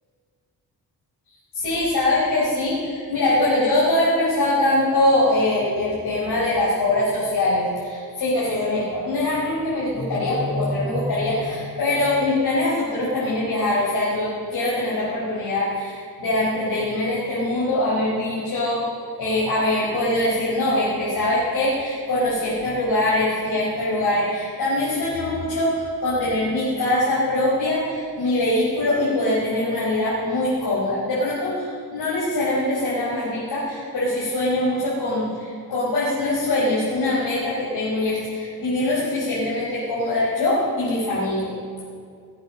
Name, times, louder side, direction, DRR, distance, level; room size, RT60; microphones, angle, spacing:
voice 1, 1.5-18.8 19.2-41.5, left 1 dB, 70° left, -9 dB, 4.9 m, -23 dB
20.0 x 8.1 x 6.5 m, 2.2 s
wide cardioid pair, 130°, 38 cm